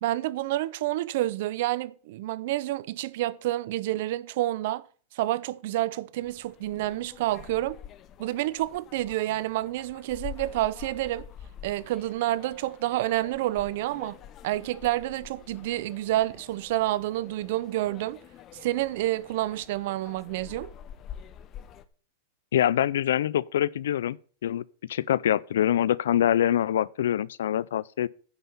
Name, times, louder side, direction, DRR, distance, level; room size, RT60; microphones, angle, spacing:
voice 1, 0.0-4.8 5.1-7.8 8.2-11.3 11.6-18.2 18.6-20.7, right 15 dB, 65° right, 0.6 m, -29 dB
sound 1, 6.2-21.9, left 9 dB, 35° left, 0.9 m, -47 dB
voice 2, 22.5-24.2 24.4-24.6 24.9-28.1, left 11 dB, 80° left, 0.4 m, -24 dB
9.9 x 5.6 x 6.9 m
hypercardioid pair, 115°, 0 cm